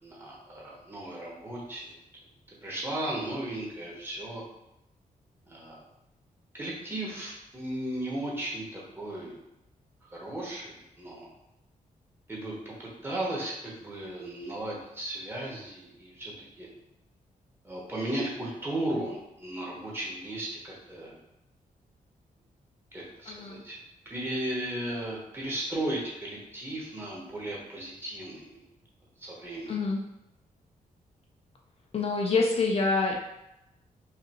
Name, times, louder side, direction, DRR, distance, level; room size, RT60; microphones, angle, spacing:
voice 1, 0.0-1.9 2.6-4.4 5.5-5.8 6.5-9.4 10.1-11.3 12.3-16.7 17.6-21.2 22.9-23.8 24.1-28.6 29.2-29.8, right 1 dB, 15° right, -5 dB, 0.9 m, -35 dB
voice 2, 23.3-23.6 29.7-30.0 31.9-33.2, left 3 dB, 45° left, 0 dB, 0.4 m, -26 dB
4.9 x 2.5 x 2.9 m, 0.89 s
wide cardioid pair, 160°, 15 cm